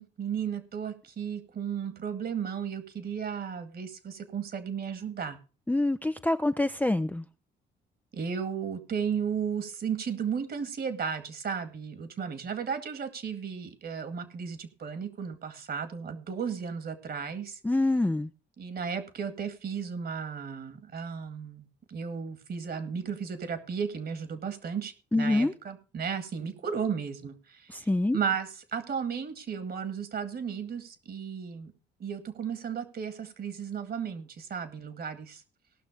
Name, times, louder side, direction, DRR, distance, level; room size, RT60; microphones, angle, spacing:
voice 1, 0.0-5.4 8.1-17.6 18.6-27.7 28.1-31.7 32.0-35.4, right 7 dB, 55° right, 2.1 m, -34 dB
voice 2, 5.7-7.2 17.6-18.3 25.1-25.5 27.7-28.2, left 2 dB, 10° left, 0.6 m, -26 dB
17.5 x 6.1 x 5.1 m
cardioid pair, 90°, 20 cm